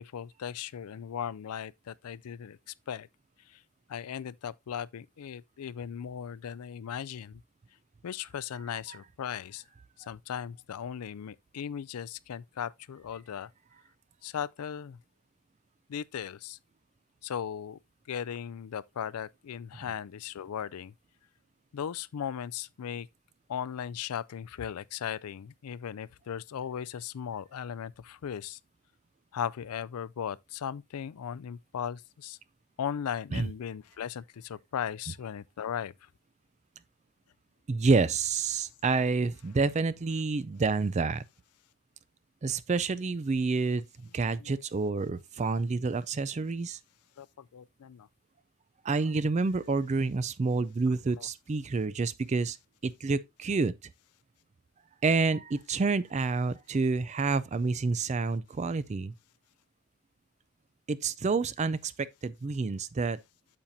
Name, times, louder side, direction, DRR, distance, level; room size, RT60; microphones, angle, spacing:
voice 1, 0.0-2.6 2.9-3.1 3.9-7.4 8.0-9.6 10.1-13.5 14.2-15.0 15.9-16.6 17.2-17.8 18.1-20.9 21.7-23.1 23.5-28.6 29.3-32.4 32.8-35.9 47.2-47.3 47.5-48.1, left 8 dB, 85° left, 0.4 m, -37 dB
voice 2, 37.7-41.2 42.4-43.8 44.1-46.8 48.8-52.6 52.8-53.7 55.0-59.1 60.9-63.2, right 4 dB, 30° right, 0.3 m, -28 dB
8.8 x 7.3 x 2.6 m
head